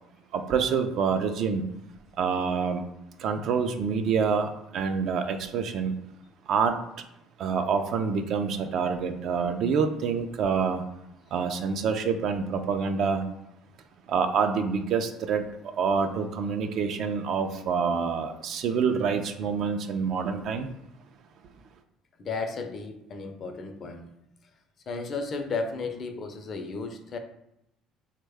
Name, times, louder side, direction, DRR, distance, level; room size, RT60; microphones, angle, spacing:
voice 1, 0.3-1.6 2.1-2.8 3.2-5.9 6.5-6.8 7.4-10.8 11.3-13.3 14.1-15.4 15.8-20.7, right 6 dB, 60° right, 7 dB, 0.3 m, -27 dB
voice 2, 22.2-24.1 24.9-27.2, left 4 dB, 45° left, 6 dB, 0.4 m, -34 dB
3.0 x 2.2 x 3.4 m, 0.83 s
supercardioid pair, 85°, 0 cm